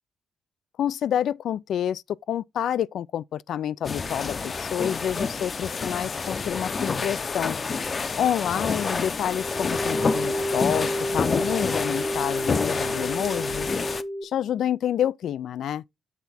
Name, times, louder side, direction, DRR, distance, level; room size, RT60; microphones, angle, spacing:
voice 1, 0.8-7.6 8.2-13.7 14.2-15.8, left 10 dB, 75° left, 0.4 m, -28 dB
sound 1, 3.8-14.0, left 4 dB, 40° left, 0.6 m, -29 dB
sound 2, 9.3-14.2, equal, 5° left, 0.9 m, -30 dB
8.2 x 3.4 x 4.2 m
cardioid pair, 90°, 0 cm